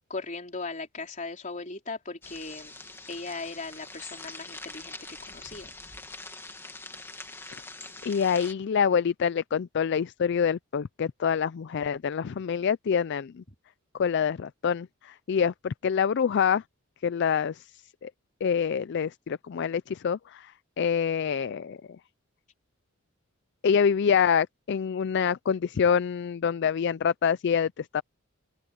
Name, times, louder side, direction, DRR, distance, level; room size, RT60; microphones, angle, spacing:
voice 1, 0.1-2.7 3.1-5.0 5.3-5.7, left 3 dB, 40° left, 4.0 m, -38 dB
sound 1, 2.2-8.5, left 2 dB, 10° left, 1.9 m, -43 dB
voice 2, 8.1-13.4 13.9-16.6 17.0-17.7 18.0-18.1 18.4-21.8 23.6-28.0, left 7 dB, 55° left, 0.4 m, -26 dB
open air
head